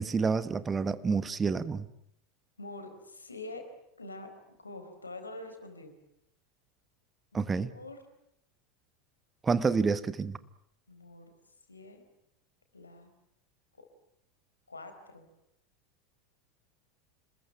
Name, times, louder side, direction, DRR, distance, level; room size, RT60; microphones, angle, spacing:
voice 1, 0.0-1.9 7.3-7.7 9.4-10.4, right 5 dB, 20° right, 14 dB, 1.4 m, -28 dB
voice 2, 2.6-3.7 4.0-4.3 4.6-5.9 7.3-8.0 10.9-11.3 11.7-12.0 12.7-13.1 13.8-13.9 14.7-15.3, left 2 dB, 85° left, 7 dB, 4.5 m, -45 dB
28.0 x 21.5 x 9.2 m, 0.76 s
figure-of-eight pair, 80°, 0 cm